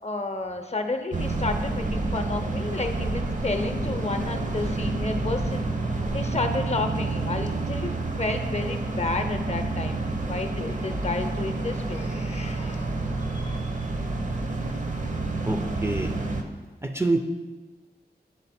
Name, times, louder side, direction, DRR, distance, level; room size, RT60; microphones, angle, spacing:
voice 1, 0.0-5.7 6.1-13.1 13.4-13.6, left 3 dB, 40° left, 6 dB, 0.6 m, -31 dB
sound 1, 1.1-16.4, right 2 dB, 45° right, 0.7 m, -29 dB
voice 2, 15.4-16.1 16.8-17.2, right 2 dB, 15° right, 5 dB, 0.5 m, -26 dB
9.9 x 3.7 x 4.2 m, 1.3 s
wide cardioid pair, 65°, 17 cm